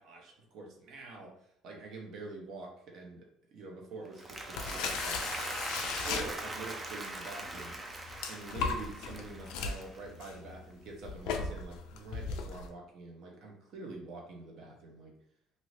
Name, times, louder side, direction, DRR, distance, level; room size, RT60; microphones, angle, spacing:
voice 1, 0.0-1.3 1.6-3.2 3.5-5.3 6.0-7.8 8.3-15.1, right 3 dB, 50° right, 0 dB, 0.8 m, -46 dB
Applause, 4.0-10.4, right 2 dB, 15° right, 0.4 m, -41 dB
sound 1, 4.4-6.8 7.4-12.7, left 5 dB, 75° left, 0.4 m, -37 dB
2.6 x 2.6 x 3.2 m, 0.71 s
cardioid pair, 165°, 0 cm